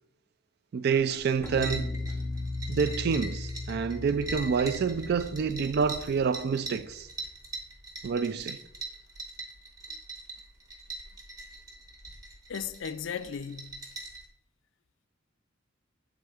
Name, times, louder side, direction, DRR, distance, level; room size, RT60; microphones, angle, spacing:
voice 1, 0.7-1.9 2.7-7.1 8.0-8.6, right 6 dB, 50° right, 0.3 m, -28 dB
sound 1, 0.9-14.2, right 2 dB, 20° right, 0.9 m, -42 dB
sound 2, 1.4-6.7, left 2 dB, 10° left, 0.6 m, -37 dB
voice 2, 12.5-13.9, left 7 dB, 65° left, 0.4 m, -36 dB
7.6 x 3.6 x 4.8 m
head